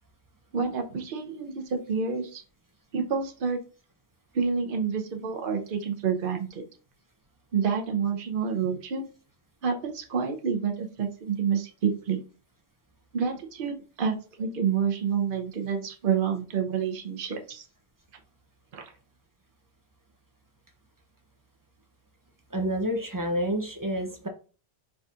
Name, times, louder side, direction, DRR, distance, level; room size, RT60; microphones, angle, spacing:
voice 1, 0.5-2.4 2.9-3.6 4.3-6.7 7.5-9.0 9.6-12.2 13.1-17.6 18.7-18.9, right 6 dB, 55° right, 4 dB, 0.8 m, -28 dB
voice 2, 22.5-24.3, equal, 25° right, 3 dB, 0.4 m, -29 dB
4.0 x 3.6 x 2.4 m, 0.36 s
omnidirectional pair, 1.1 m